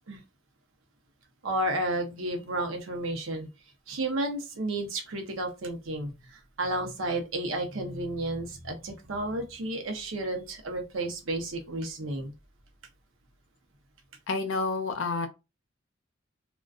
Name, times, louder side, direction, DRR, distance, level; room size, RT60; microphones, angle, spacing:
voice 1, 1.4-3.5 3.9-12.3, right 1 dB, 80° right, 0.7 m, -32 dB
voice 2, 14.3-15.3, left 3 dB, 70° left, 0.6 m, -29 dB
2.4 x 2.2 x 2.3 m
head